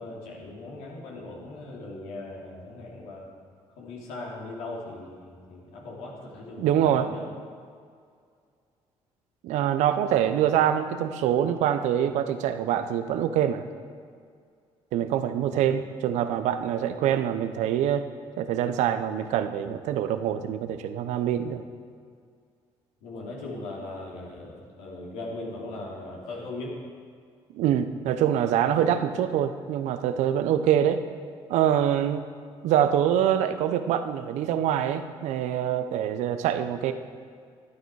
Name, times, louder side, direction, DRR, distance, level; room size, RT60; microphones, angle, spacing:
voice 1, 0.0-3.3 3.8-7.3 15.4-15.6 23.0-26.7, left 2 dB, 85° left, -3 dB, 2.9 m, -39 dB
voice 2, 6.6-7.1 9.4-13.6 14.9-18.1 18.4-21.6 27.5-31.0 31.5-32.2 32.6-36.9, right 10 dB, 80° right, 10 dB, 0.8 m, -25 dB
13.0 x 11.5 x 4.8 m, 2.2 s
supercardioid pair, 75°, 12 cm